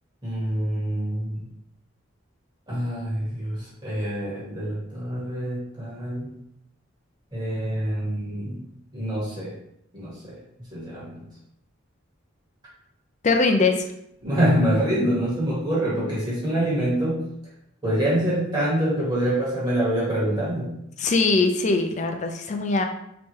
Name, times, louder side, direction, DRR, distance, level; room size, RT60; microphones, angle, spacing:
voice 1, 0.2-1.5 2.7-6.3 7.3-8.6 8.9-9.5 9.9-11.3 14.2-17.3 17.8-20.7, right 1 dB, 20° right, -7 dB, 1.5 m, -26 dB
voice 2, 13.2-13.9 21.0-22.8, left 3 dB, 35° left, 5 dB, 0.4 m, -21 dB
3.6 x 2.9 x 3.1 m, 0.78 s
head